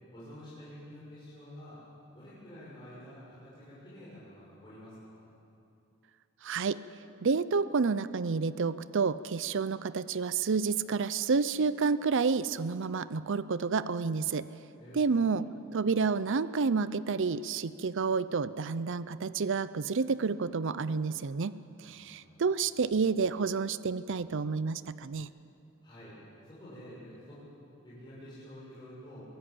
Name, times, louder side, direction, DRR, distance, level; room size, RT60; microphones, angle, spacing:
voice 1, 0.1-1.8 2.1-5.3 14.8-15.2 21.8-22.3 22.6-22.7 25.8-26.1 26.4-27.4 27.8-29.2, equal, 20° left, -10 dB, 6.7 m, -49 dB
voice 2, 6.4-6.8 7.2-14.5 14.9-15.5 15.7-25.3, right 5 dB, 60° right, 15 dB, 0.6 m, -29 dB
22.5 x 16.0 x 8.6 m, 2.7 s
head